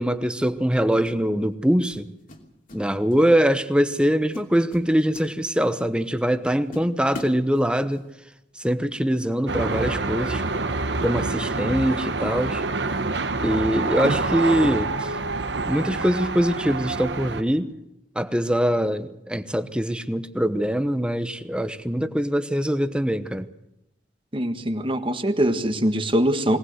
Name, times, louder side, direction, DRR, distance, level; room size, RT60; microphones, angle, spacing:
voice 1, 0.0-2.1 2.7-8.1 8.6-10.4 11.0-12.6 13.4-15.1 15.7-17.7 18.1-23.5, equal, 5° right, 1.0 m, -23 dB
sound 1, 0.6-0.8 1.9-2.8 3.1-3.4 3.9-4.0 4.3-5.8 6.3-6.4 6.7-8.0, left 1 dB, 50° left, 3.0 m, -41 dB
sound 2, 9.5-17.4, right 3 dB, 75° right, 1.3 m, -27 dB
voice 2, 24.3-26.6, right 1 dB, 30° right, 1.6 m, -23 dB
21.5 x 18.5 x 8.0 m
head